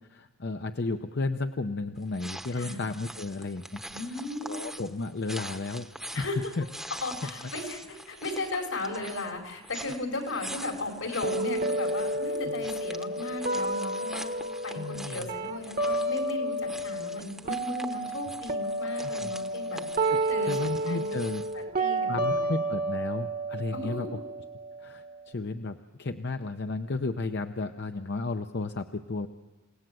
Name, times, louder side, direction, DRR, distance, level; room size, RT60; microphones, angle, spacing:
voice 1, 0.1-3.8 4.4-5.9 6.2-6.3 6.6-6.9 12.5-12.6 14.8-15.3 19.0-19.3 20.1-20.2 20.5-21.4 22.1-24.2 24.8-29.3, left 3 dB, 55° left, 7 dB, 0.7 m, -33 dB
sound 1, 2.0-21.6, right 1 dB, ahead, 0.9 m, -44 dB
voice 2, 3.9-4.6 6.1-6.4 7.0-7.8 8.1-14.3 14.6-19.8 20.3-21.2 21.5-22.6 23.7-24.1, left 2 dB, 85° left, 2 dB, 4.9 m, -36 dB
sound 2, 11.2-17.2 17.5-25.2, right 2 dB, 45° right, 1.2 m, -31 dB
29.0 x 18.0 x 7.7 m, 1.2 s
head